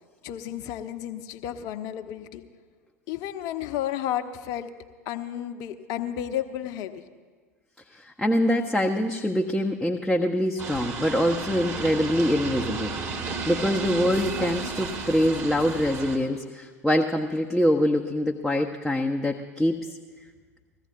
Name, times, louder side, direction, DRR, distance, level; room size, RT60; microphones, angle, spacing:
voice 1, 0.2-2.4 3.1-4.7 5.1-7.0, left 11 dB, 45° left, 9 dB, 0.8 m, -32 dB
voice 2, 7.9-20.0, left 1 dB, ahead, 0 dB, 0.7 m, -24 dB
sound 1, 10.6-16.2, right 4 dB, 30° right, 1.8 m, -33 dB
21.5 x 15.0 x 2.6 m, 1.5 s
figure-of-eight pair, 75°, 8 cm